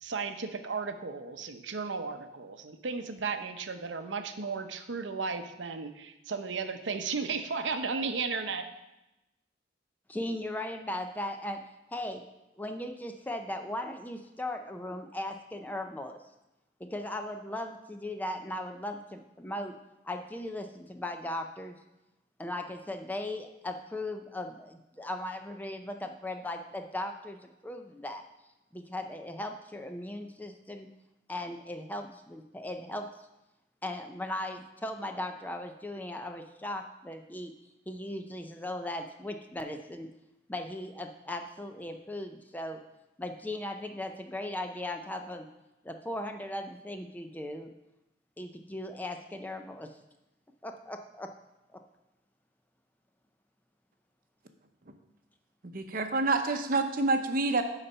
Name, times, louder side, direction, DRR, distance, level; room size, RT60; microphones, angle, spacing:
voice 1, 0.0-8.7, right 4 dB, 80° right, 8 dB, 0.7 m, -34 dB
voice 2, 10.1-11.6 11.9-12.2 12.6-16.2 16.8-19.8 20.0-21.8 22.4-27.4 27.6-28.2 28.7-30.9 31.3-33.3 33.8-37.5 37.9-40.1 40.5-42.8 43.2-45.5 45.8-47.7 48.4-49.9 50.6-51.3, left 1 dB, 10° left, 5 dB, 0.5 m, -38 dB
voice 3, 55.7-57.6, right 3 dB, 50° right, 6 dB, 0.8 m, -27 dB
11.0 x 4.1 x 5.5 m, 0.96 s
head